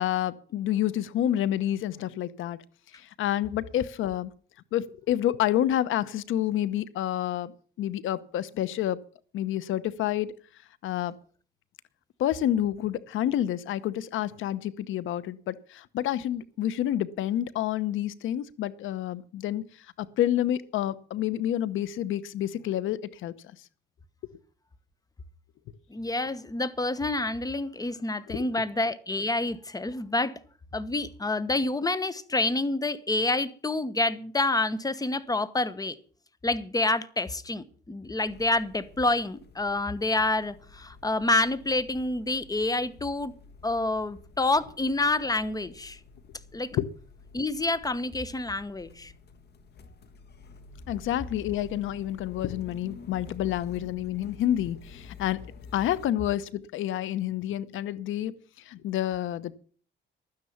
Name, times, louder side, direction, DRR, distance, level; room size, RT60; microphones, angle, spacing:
voice 1, 0.0-2.6 2.9-4.3 4.7-9.0 9.3-10.3 10.8-11.1 12.2-19.7 20.0-23.3 28.3-28.4 46.7-46.9 50.9-55.4 55.7-58.4 58.7-59.6, left 12 dB, 80° left, 0.9 m, -29 dB
voice 2, 25.9-30.4 30.7-36.0 36.4-43.3 43.6-46.0 46.5-46.7 47.3-49.1, left 2 dB, 20° left, 1.1 m, -28 dB
sound 1, 38.3-56.1, left 4 dB, 55° left, 1.6 m, -49 dB
12.0 x 9.7 x 7.1 m
cardioid pair, 90°, 20 cm